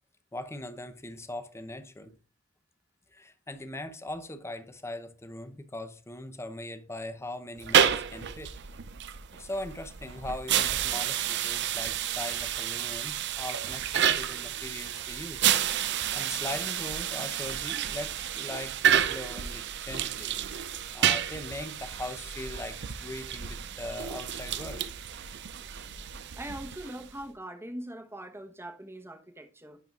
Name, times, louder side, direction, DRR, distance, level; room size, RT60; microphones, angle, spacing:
voice 1, 0.3-2.1 3.1-8.5 9.3-15.5 16.1-20.4 20.9-24.9, left 1 dB, 15° left, 0.7 m, -40 dB
sound 1, 7.6-27.2, right 9 dB, 55° right, 0.5 m, -30 dB
voice 2, 26.2-29.8, right 1 dB, 10° right, 1.0 m, -42 dB
10.5 x 4.6 x 2.4 m
head